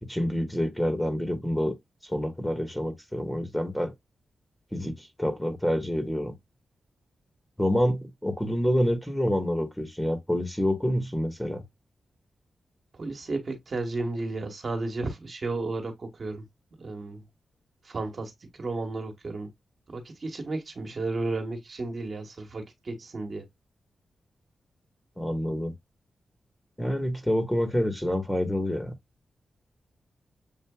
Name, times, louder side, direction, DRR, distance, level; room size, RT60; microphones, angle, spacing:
voice 1, 0.0-1.8 2.1-3.9 4.7-6.3 7.6-11.6 25.2-25.7 26.8-28.9, equal, 5° left, 1.5 m, -27 dB
voice 2, 12.9-16.4 16.8-17.2 17.8-19.5 19.9-23.4, right 2 dB, 55° right, 1.3 m, -33 dB
7.4 x 2.5 x 2.3 m
cardioid pair, 45°, 0 cm